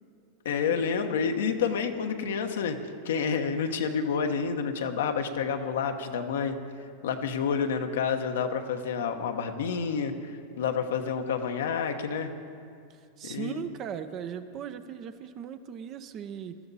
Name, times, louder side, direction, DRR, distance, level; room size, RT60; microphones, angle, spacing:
voice 1, 0.4-2.8 3.0-6.6 7.0-12.3 13.2-13.6, left 6 dB, 80° left, 5 dB, 1.1 m, -29 dB
voice 2, 12.9-16.6, right 8 dB, 40° right, 10 dB, 0.8 m, -38 dB
19.5 x 13.5 x 4.2 m, 2.3 s
hypercardioid pair, 115°, 0 cm